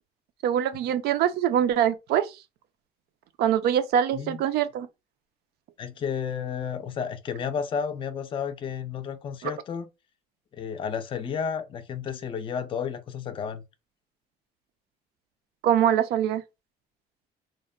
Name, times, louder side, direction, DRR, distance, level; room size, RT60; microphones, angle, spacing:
voice 1, 0.4-2.3 3.4-4.9 15.6-16.4, right 10 dB, 75° right, 0.4 m, -23 dB
voice 2, 5.8-9.9 10.5-13.6, left 7 dB, 30° left, 0.4 m, -32 dB
2.8 x 2.1 x 2.2 m
cardioid pair, 110°, 17 cm